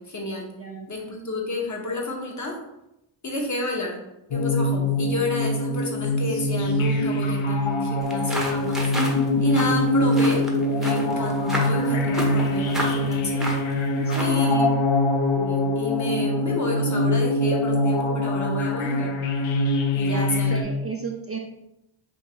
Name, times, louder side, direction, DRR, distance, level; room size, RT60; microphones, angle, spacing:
voice 1, 0.0-0.5 0.9-2.6 3.2-4.0 4.3-8.9 9.4-13.5 14.2-14.7 15.3-19.2 19.9-20.6, left 2 dB, 35° left, 0 dB, 1.0 m, -30 dB
voice 2, 0.6-0.9 13.9-14.8 20.1-21.4, right 4 dB, 30° right, 0 dB, 0.5 m, -33 dB
sound 1, 4.3-20.6, left 1 dB, 70° left, 0.6 m, -23 dB
sound 2, 8.0-14.5, equal, ahead, 0.8 m, -32 dB
2.9 x 2.7 x 4.3 m, 0.88 s
cardioid pair, 75°, 49 cm